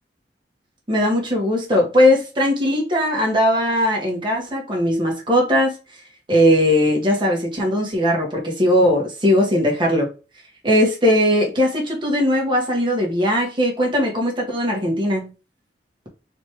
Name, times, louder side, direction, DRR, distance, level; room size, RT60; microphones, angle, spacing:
voice 1, 0.9-5.8 6.3-10.1 10.6-15.3, equal, 25° right, 1.6 m, -19 dB
4.2 x 3.2 x 3.0 m
head